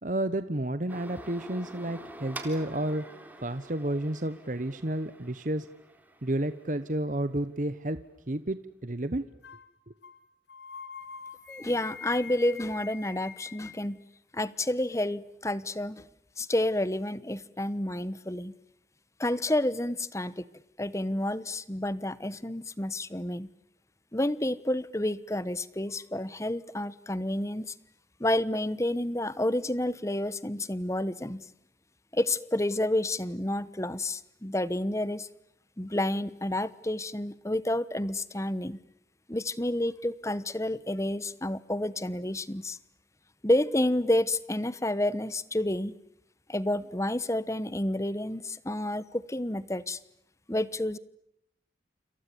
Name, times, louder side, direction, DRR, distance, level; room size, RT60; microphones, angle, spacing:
voice 1, 0.0-3.0 3.4-5.7 6.2-8.0 8.3-9.2 9.9-10.0, right 1 dB, 45° right, 12 dB, 1.1 m, -31 dB
sound 1, 0.9-7.6, right 1 dB, 10° right, 3.9 m, -47 dB
sound 2, 9.4-9.7 10.0-10.2 10.5-13.9, left 5 dB, 80° left, 2.0 m, -44 dB
voice 2, 11.5-14.0 14.3-16.0 16.4-18.5 19.2-20.4 20.8-23.5 24.1-27.7 28.2-31.4 32.1-35.3 35.8-38.8 39.3-42.8 43.4-45.9 46.5-50.0 50.5-51.0, left 1 dB, 15° left, 17 dB, 1.1 m, -30 dB
29.5 x 27.5 x 7.0 m, 0.77 s
head